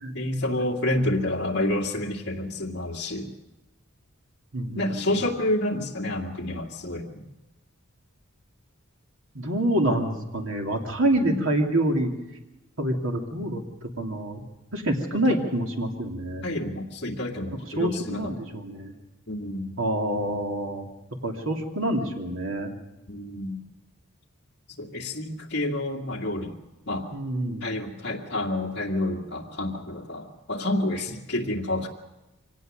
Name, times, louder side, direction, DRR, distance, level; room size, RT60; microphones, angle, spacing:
voice 1, 0.1-3.3 4.7-7.1 11.2-11.5 15.1-15.4 16.4-18.3 19.3-19.8 23.1-23.6 24.8-26.6 26.9-27.1 27.6-31.9, left 1 dB, 55° left, -1 dB, 2.2 m, -29 dB
voice 2, 4.5-5.1 9.3-12.1 12.8-13.6 14.0-14.4 14.7-16.4 17.8-18.9 19.8-20.9 21.2-22.7 27.1-27.7, right 1 dB, 65° right, 2 dB, 2.8 m, -26 dB
24.0 x 18.0 x 6.6 m, 1.0 s
head